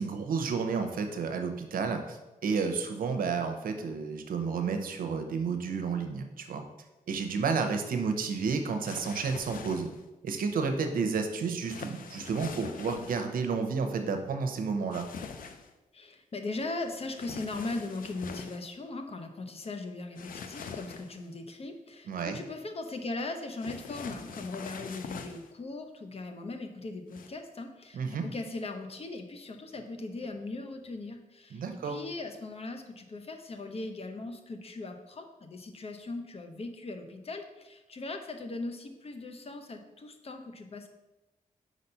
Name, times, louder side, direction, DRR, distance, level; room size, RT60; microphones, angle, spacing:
voice 1, 0.0-6.6 7.1-9.9 10.2-15.1 22.1-22.4 27.9-28.3 31.5-32.0, right 5 dB, 85° right, 6 dB, 0.7 m, -31 dB
sound 1, 8.8-10.1 11.6-13.3 14.9-15.7 17.1-18.6 20.2-21.3 23.6-25.5 27.1-27.3, left 6 dB, 75° left, 0.5 m, -43 dB
voice 2, 15.9-40.9, left 2 dB, 45° left, 5 dB, 0.8 m, -39 dB
5.0 x 4.1 x 5.5 m, 1.0 s
cardioid pair, 90°, 14 cm